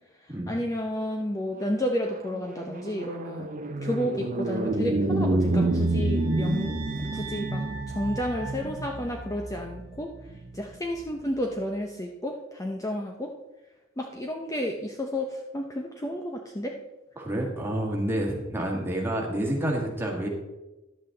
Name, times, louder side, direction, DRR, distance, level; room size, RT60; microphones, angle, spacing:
voice 1, 0.2-3.5 3.8-6.8 7.1-10.1 10.5-13.3 14.0-16.7, left 1 dB, 15° left, 2 dB, 0.7 m, -31 dB
sound 1, 1.7-11.2, right 2 dB, 40° right, 0.8 m, -29 dB
sound 2, 5.5-9.8, right 6 dB, 75° right, 1.1 m, -43 dB
voice 2, 17.2-20.3, right 1 dB, 10° right, -1 dB, 1.8 m, -29 dB
11.0 x 8.0 x 3.8 m, 1.0 s
head